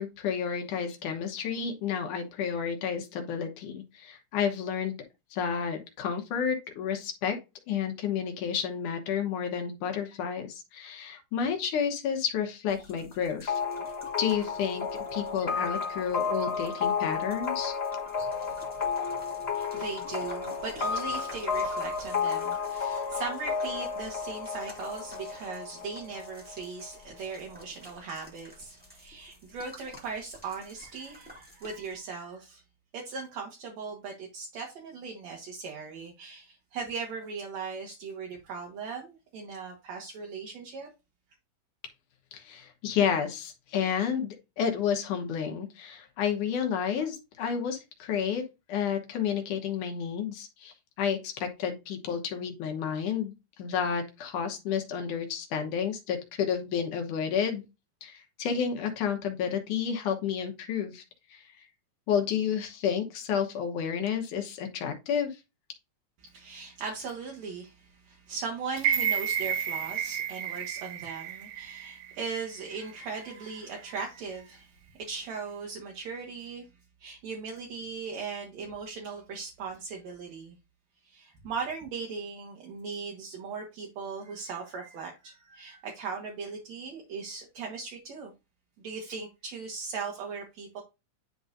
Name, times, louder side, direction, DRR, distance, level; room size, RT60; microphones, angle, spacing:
voice 1, 0.0-5.0 5.3-7.4 7.7-13.6 14.2-14.9 15.1-17.7 42.3-48.4 48.7-57.6 58.0-61.0 61.3-61.6 62.1-65.4, left 7 dB, 75° left, 2.5 m, -31 dB
sound 1, 12.7-32.0, equal, 5° right, 1.7 m, -52 dB
sound 2, 13.5-27.0, left 5 dB, 45° left, 0.8 m, -32 dB
voice 2, 18.2-32.6 32.9-40.9 66.2-76.7 77.0-80.6 81.0-88.3 88.8-90.8, right 5 dB, 60° right, 2.4 m, -39 dB
sound 3, 68.8-72.9 73.3-73.4, right 9 dB, 90° right, 2.6 m, -31 dB
10.5 x 3.9 x 2.6 m
omnidirectional pair, 3.8 m